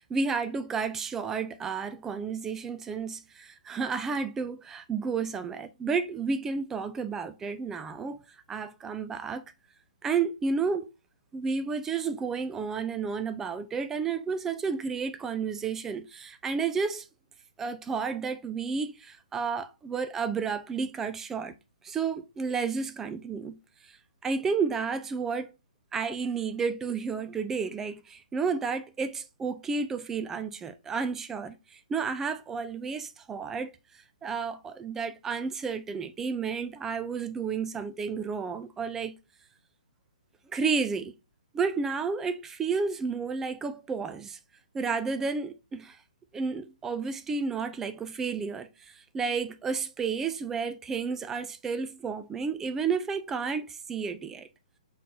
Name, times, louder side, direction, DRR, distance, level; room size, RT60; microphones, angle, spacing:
voice 1, 0.1-8.2 8.5-9.4 10.0-10.9 11.3-17.1 17.6-21.5 21.8-23.6 24.2-25.5 25.9-33.7 34.2-39.1 40.5-41.1 41.5-44.4 44.7-46.0 46.3-48.7 49.1-54.5, right 5 dB, 10° right, 0.3 m, -31 dB
3.9 x 3.7 x 2.7 m
hypercardioid pair, 155°, 4 cm